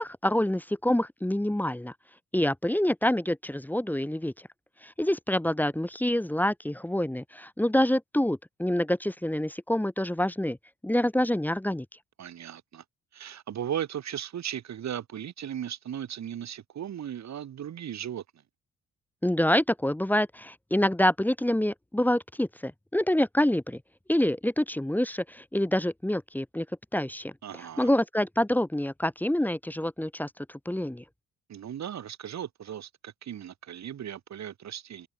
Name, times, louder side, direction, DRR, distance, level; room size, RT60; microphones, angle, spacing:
voice 1, 0.0-1.9 2.3-4.3 4.8-10.6 10.8-11.8 19.2-23.8 24.1-26.7 26.9-27.3 27.8-31.0, left 1 dB, 5° left, 1.4 m, -26 dB
voice 2, 12.2-12.8 13.1-18.2 27.4-27.9 31.5-35.1, right 10 dB, 65° right, 6.3 m, -37 dB
open air
cardioid pair, 90°, 30 cm